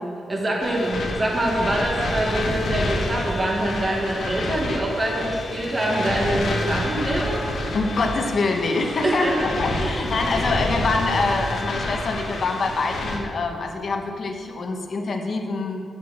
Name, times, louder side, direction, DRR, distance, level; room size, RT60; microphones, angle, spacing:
voice 1, 0.3-7.4 9.0-9.5 9.7-10.0, right 1 dB, 25° right, -2 dB, 1.9 m, -24 dB
sound 1, 0.6-13.2, left 1 dB, 70° left, 2.0 m, -28 dB
voice 2, 7.7-9.3 9.6-15.8, left 3 dB, 50° left, 3 dB, 1.3 m, -25 dB
8.6 x 7.3 x 7.6 m, 2.4 s
wide cardioid pair, 135°, 0 cm